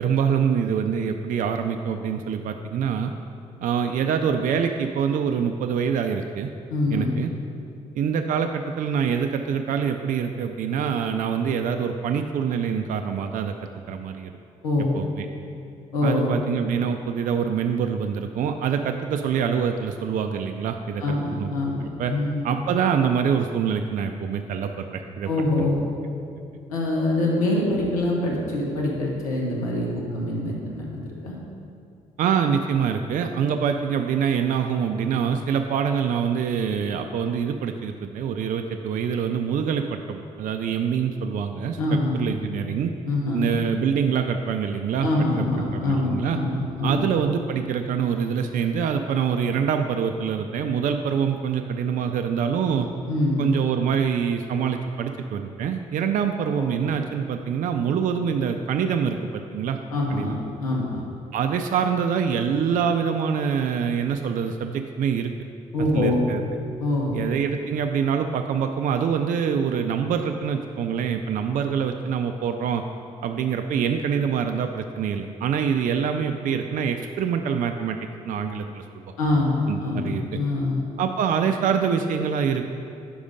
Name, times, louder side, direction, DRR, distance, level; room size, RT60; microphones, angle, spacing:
voice 1, 0.0-3.1 3.6-6.5 6.9-7.3 7.9-13.5 13.9-14.3 14.9-15.3 16.0-21.0 21.3-21.5 22.0-22.1 22.4-25.3 25.6-25.7 32.2-42.9 43.3-45.5 45.7-46.4 46.8-52.9 53.4-59.8 60.1-60.4 61.3-65.3 65.8-66.4 67.1-72.8 73.2-78.0 78.2-78.8 79.7-80.4 81.0-82.6, right 7 dB, 50° right, 6 dB, 0.4 m, -25 dB
voice 2, 6.7-7.1 14.6-15.0 15.9-16.3 21.0-22.4 25.3-25.8 26.7-31.4 41.8-42.2 43.0-43.5 45.0-47.0 53.1-53.5 56.6-56.8 59.9-61.0 65.7-66.2 66.8-67.2 79.2-80.8, left 2 dB, 85° left, -2 dB, 0.9 m, -24 dB
5.3 x 5.0 x 5.0 m, 2.5 s
hypercardioid pair, 45°, 18 cm